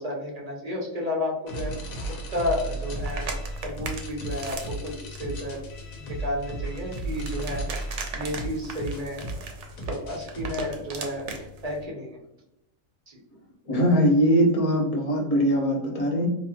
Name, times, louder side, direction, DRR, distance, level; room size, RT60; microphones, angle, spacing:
voice 1, 0.0-1.9 2.3-3.3 3.6-5.6 6.0-7.9 8.1-9.4 9.9-12.2 13.1-13.2, left 1 dB, 45° right, -2 dB, 0.5 m, -32 dB
sound 1, 1.5-10.6, right 2 dB, 90° left, 1.2 m, -35 dB
sound 2, 2.9-11.8, right 3 dB, 70° right, 0.8 m, -39 dB
voice 2, 13.7-16.3, equal, 40° left, -2 dB, 0.6 m, -21 dB
3.0 x 2.6 x 2.2 m, 0.86 s
omnidirectional pair, 1.4 m